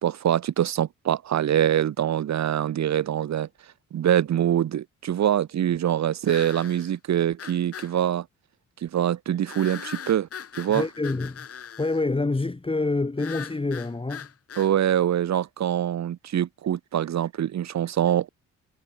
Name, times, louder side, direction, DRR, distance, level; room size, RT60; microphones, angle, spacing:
voice 1, 0.0-3.5 3.9-8.3 8.8-10.3 10.6-10.8 14.6-18.3, right 10 dB, 65° right, 2.6 m, -24 dB
sound 1, 6.3-6.9 7.4-7.9 9.5-12.0 13.2-14.7, left 7 dB, 50° left, 4.0 m, -40 dB
voice 2, 10.7-11.5 11.8-14.3, left 3 dB, 20° left, 2.9 m, -27 dB
cardioid pair, 90°, 30 cm